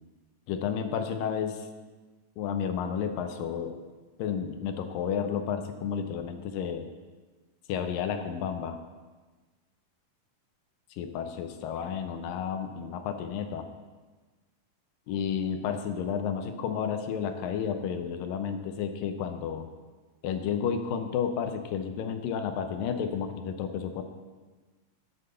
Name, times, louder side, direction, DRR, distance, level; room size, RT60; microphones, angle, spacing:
voice 1, 0.5-1.7 2.4-3.8 4.2-6.9 7.7-8.8 10.9-13.7 15.1-19.7 20.2-24.0, left 7 dB, 80° left, 7 dB, 2.4 m, -31 dB
8.0 x 7.5 x 6.8 m, 1.3 s
omnidirectional pair, 4.1 m